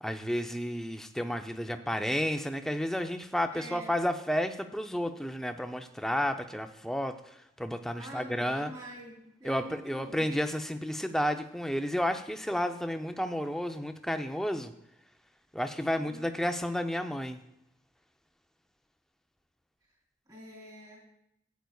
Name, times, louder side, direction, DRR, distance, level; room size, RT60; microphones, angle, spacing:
voice 1, 0.0-8.7 9.4-14.7 15.5-17.4, equal, ahead, 7 dB, 0.5 m, -32 dB
voice 2, 3.5-4.0 8.0-9.1 9.4-10.2 16.0-16.3 20.3-21.1, right 1 dB, 25° right, -2 dB, 3.4 m, -46 dB
14.5 x 9.3 x 2.3 m, 0.81 s
head